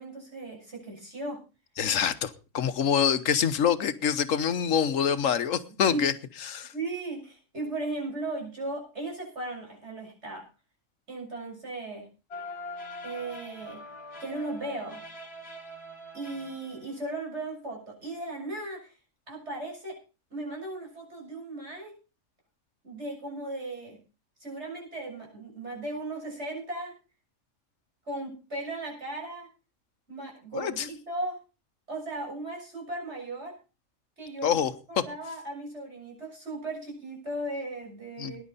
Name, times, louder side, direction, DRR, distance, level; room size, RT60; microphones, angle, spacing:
voice 1, 0.0-1.4 5.9-6.0 6.7-10.5 11.1-12.1 13.0-13.8 14.2-15.0 16.1-18.9 19.3-20.0 20.3-21.9 22.8-24.0 24.4-27.0 28.1-29.5 30.1-31.4 31.9-33.5 34.2-34.6 34.9-38.4, right 2 dB, 60° right, -1 dB, 7.2 m, -36 dB
voice 2, 1.8-6.1 6.4-6.7 30.6-30.8 34.4-34.7 38.2-38.4, left 8 dB, 85° left, 11 dB, 1.4 m, -26 dB
sound 1, 12.3-17.1, left 1 dB, 50° left, 2.5 m, -43 dB
19.5 x 10.5 x 4.1 m, 0.32 s
omnidirectional pair, 1.3 m